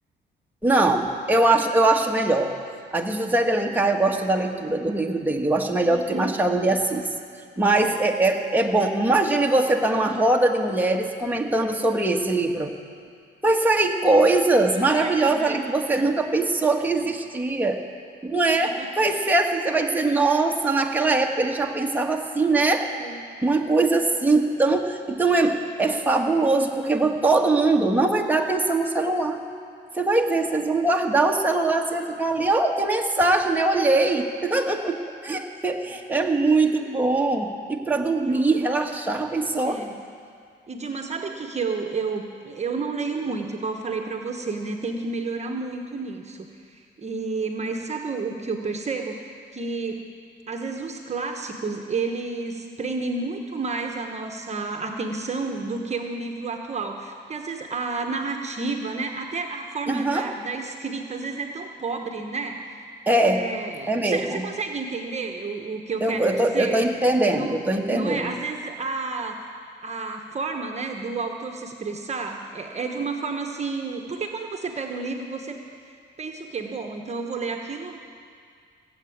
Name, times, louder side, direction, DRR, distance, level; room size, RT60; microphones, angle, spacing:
voice 1, 0.6-2.5 2.9-7.1 7.6-12.7 13.4-17.8 18.2-22.9 23.4-29.4 29.9-35.0 35.2-39.8 59.9-60.3 63.1-63.4 63.9-64.4 66.0-68.3, right 2 dB, 10° right, 1 dB, 1.4 m, -22 dB
voice 2, 5.9-6.4 14.5-15.6 15.9-16.1 16.8-16.9 18.6-18.9 20.9-21.1 22.5-22.6 23.0-23.2 38.2-38.6 39.6-40.0 40.7-50.1 50.5-62.8 63.1-66.8 67.2-67.6 67.8-69.4 69.8-75.6 76.2-78.0, right 4 dB, 35° right, 4 dB, 1.2 m, -31 dB
17.0 x 8.0 x 8.7 m, 2.2 s
cardioid pair, 90°, 20 cm